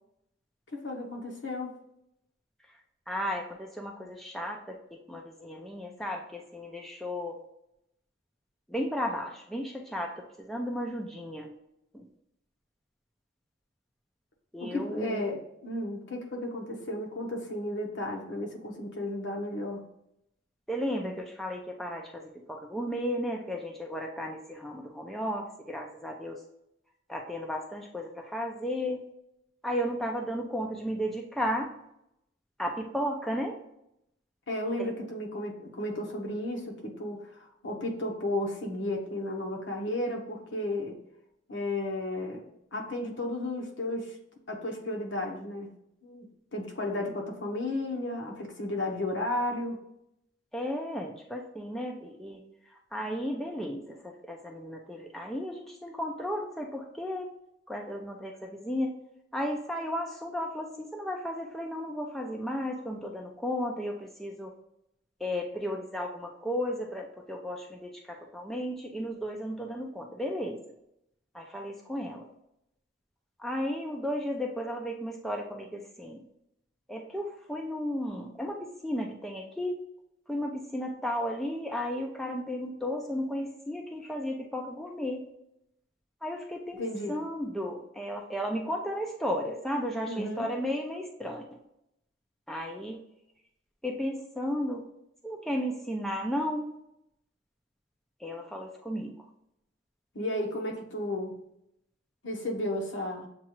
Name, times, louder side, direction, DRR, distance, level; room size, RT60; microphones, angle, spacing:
voice 1, 0.7-1.7 14.6-19.8 34.5-41.0 41.5-44.2 44.5-45.7 46.0-49.8 86.8-87.2 90.1-90.5 100.1-101.4 102.2-103.3, left 1 dB, 65° left, 0 dB, 1.0 m, -33 dB
voice 2, 3.1-7.4 8.7-11.5 11.9-12.0 14.5-15.2 20.7-26.4 27.1-29.1 29.6-31.7 32.6-33.6 34.8-34.9 50.5-52.4 52.9-57.3 57.7-58.9 59.3-64.5 65.2-70.6 71.3-72.3 73.4-76.2 76.9-79.8 80.3-85.3 86.2-86.8 87.1-91.4 92.5-93.0 93.8-94.8 95.2-96.7 98.2-99.1, equal, ahead, 0 dB, 0.4 m, -34 dB
7.2 x 2.4 x 3.0 m, 0.80 s
head